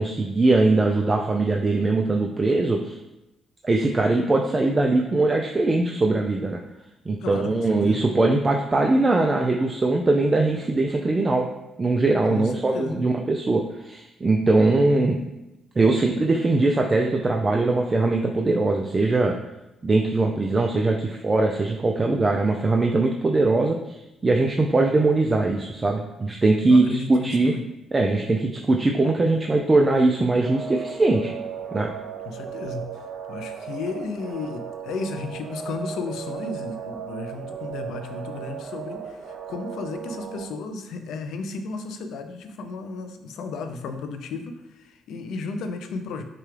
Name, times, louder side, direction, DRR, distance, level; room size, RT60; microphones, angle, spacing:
voice 1, 0.0-3.0 3.6-6.6 7.1-11.5 11.8-15.2 15.8-19.4 19.8-23.8 24.2-27.5 27.9-31.3 31.7-31.9, right 2 dB, 25° right, 1 dB, 0.4 m, -21 dB
voice 2, 7.1-8.1 12.3-13.1 26.7-27.7 32.2-46.2, left 4 dB, 80° left, 7 dB, 0.5 m, -34 dB
sound 1, 30.3-40.4, right 7 dB, 65° right, 0.6 m, -36 dB
6.6 x 2.3 x 3.2 m, 0.94 s
cardioid pair, 90°, 0 cm